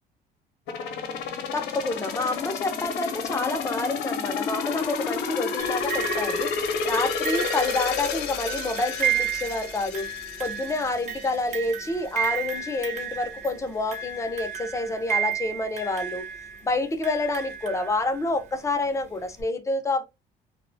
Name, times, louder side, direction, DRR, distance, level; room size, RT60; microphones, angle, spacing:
sound 1, 0.7-11.4 11.8-11.9, left 5 dB, 85° left, 0.6 m, -30 dB
voice 1, 1.5-10.1 10.4-16.2 16.6-20.0, left 2 dB, 15° left, 0.5 m, -28 dB
sound 2, 5.6-18.4 19.4-19.5, right 8 dB, 45° right, 0.7 m, -33 dB
2.6 x 2.1 x 2.5 m
cardioid pair, 110°, 17 cm